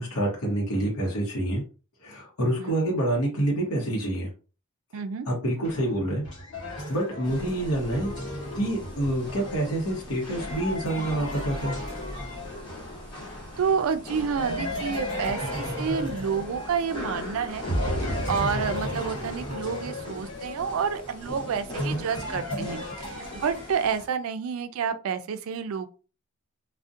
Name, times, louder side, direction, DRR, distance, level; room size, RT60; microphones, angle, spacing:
voice 1, 0.0-1.6 2.0-4.3 5.3-6.3 6.6-8.1 8.5-11.8, right 1 dB, 75° left, 0.7 m, -27 dB
voice 2, 4.9-5.3 13.6-17.6 18.0-25.9, right 6 dB, 65° right, 0.3 m, -29 dB
sound 1, 5.6-13.0 14.4-17.2 17.6-24.1, left 1 dB, 55° left, 1.1 m, -34 dB
sound 2, 7.2-24.1, left 1 dB, 20° left, 0.8 m, -40 dB
2.6 x 2.1 x 2.4 m
head